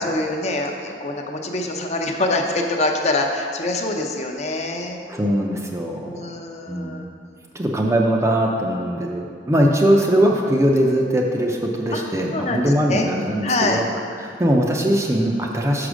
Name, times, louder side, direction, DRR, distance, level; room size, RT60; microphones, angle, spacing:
voice 1, 0.0-5.0 6.0-7.0 11.9-12.0 12.3-13.1 13.4-13.8, left 2 dB, 40° left, 2 dB, 0.6 m, -24 dB
voice 2, 5.1-6.2 6.7-7.1 7.5-13.8 14.2-15.9, right 1 dB, 15° right, 0 dB, 0.5 m, -20 dB
6.0 x 4.9 x 6.2 m, 2.2 s
head